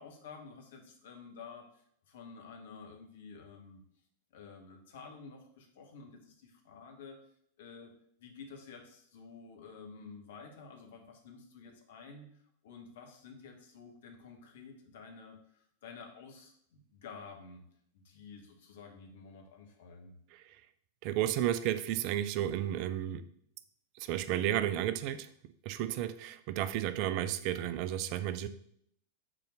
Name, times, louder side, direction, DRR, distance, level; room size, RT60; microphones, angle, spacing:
voice 1, 0.0-3.8 4.3-7.2 7.6-7.9 8.2-17.6 17.9-20.1, left 5 dB, 60° left, 2 dB, 1.6 m, -51 dB
voice 2, 21.0-23.3 24.0-25.3 25.6-28.5, right 12 dB, 45° right, 12 dB, 0.5 m, -32 dB
6.3 x 4.3 x 6.4 m, 0.67 s
figure-of-eight pair, 90°, 0 cm